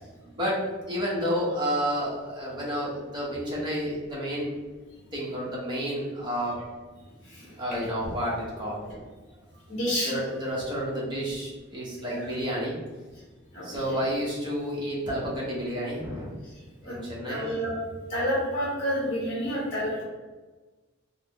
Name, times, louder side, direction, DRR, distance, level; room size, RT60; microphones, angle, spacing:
voice 1, 0.9-4.5 5.1-6.6 7.4-8.8 10.0-12.8 13.6-16.4 16.8-17.5, equal, 25° right, -6 dB, 0.9 m, -30 dB
voice 2, 9.7-10.1 12.0-12.2 13.5-13.9 16.8-16.9 17.3-17.7 18.1-20.0, equal, 35° left, -7 dB, 0.9 m, -29 dB
3.5 x 2.1 x 3.4 m, 1.3 s
head